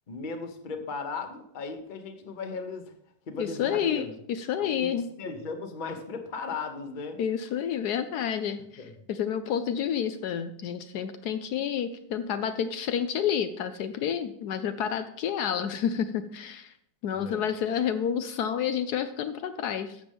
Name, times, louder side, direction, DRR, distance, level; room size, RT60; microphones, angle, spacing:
voice 1, 0.1-2.9 3.3-4.1 4.6-4.9 5.2-7.2 8.8-8.9 17.1-17.5, left 4 dB, 35° left, 7 dB, 0.9 m, -36 dB
voice 2, 3.4-5.1 7.2-16.7 17.0-20.0, left 8 dB, 75° left, 9 dB, 1.1 m, -29 dB
12.0 x 7.7 x 3.5 m, 0.70 s
omnidirectional pair, 1.8 m